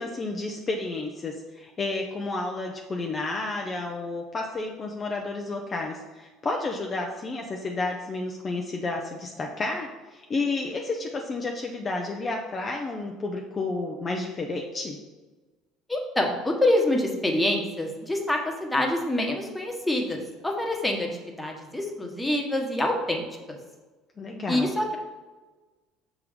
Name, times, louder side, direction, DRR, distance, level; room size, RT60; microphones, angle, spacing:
voice 1, 0.0-15.0 24.2-24.7, left 3 dB, 35° left, 1 dB, 0.7 m, -31 dB
voice 2, 15.9-23.6 24.5-25.0, left 1 dB, 5° left, 1 dB, 1.3 m, -26 dB
5.8 x 3.7 x 5.0 m, 1.2 s
hypercardioid pair, 75°, 0 cm